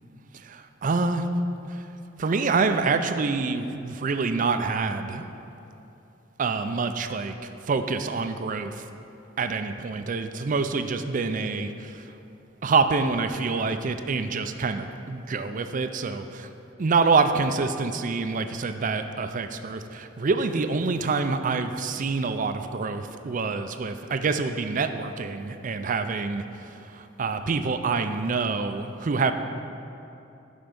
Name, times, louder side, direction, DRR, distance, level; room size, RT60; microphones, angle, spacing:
voice 1, 0.3-1.3 1.7-1.8 2.2-5.2 6.4-7.3 7.6-8.8 9.4-12.1 12.6-16.5 16.8-29.3, right 4 dB, 45° right, 9 dB, 0.4 m, -26 dB
11.5 x 4.5 x 5.2 m, 2.8 s
head